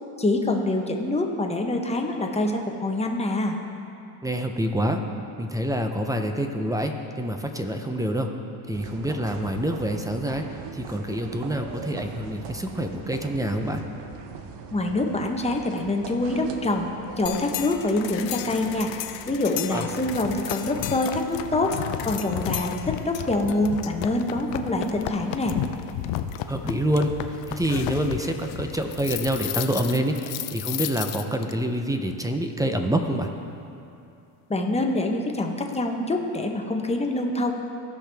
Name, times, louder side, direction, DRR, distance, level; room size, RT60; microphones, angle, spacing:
voice 1, 0.2-3.6 14.7-16.9 17.2-18.9 19.3-21.7 22.0-25.6 34.5-37.6, left 2 dB, 15° left, 2 dB, 1.0 m, -25 dB
voice 2, 4.2-5.0 5.4-8.3 8.7-10.4 10.7-13.8 19.7-19.8 26.5-27.1 27.5-33.3, right 1 dB, 10° right, 5 dB, 0.6 m, -26 dB
sound 1, 8.7-24.0, right 6 dB, 65° right, 0.9 m, -42 dB
sound 2, 17.3-31.5, left 12 dB, 65° left, 0.6 m, -33 dB
16.5 x 5.8 x 3.5 m, 2.7 s
cardioid pair, 105°, 46 cm